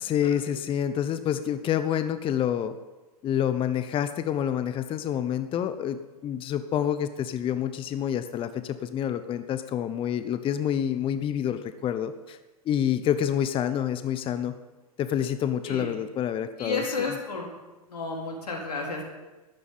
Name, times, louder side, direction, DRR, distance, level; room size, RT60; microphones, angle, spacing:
voice 1, 0.0-2.8 3.2-12.4 12.7-14.5 15.0-17.1, left 9 dB, 25° left, 11 dB, 0.9 m, -28 dB
voice 2, 16.6-17.5 17.9-19.0, left 3 dB, 80° left, -1 dB, 4.1 m, -31 dB
13.5 x 11.0 x 8.6 m, 1.2 s
hypercardioid pair, 105°, 20 cm